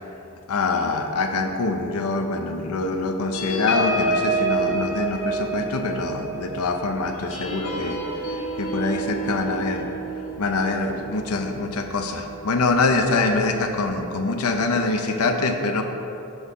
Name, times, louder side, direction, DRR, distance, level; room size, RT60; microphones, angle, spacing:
voice 1, 0.5-8.0 8.6-9.9 10.4-15.8, left 3 dB, 85° left, 5 dB, 0.6 m, -24 dB
sound 1, 3.3-12.3 12.7-12.9 13.2-13.5, right 2 dB, 60° left, 1.4 m, -29 dB
6.3 x 5.4 x 4.9 m, 2.9 s
head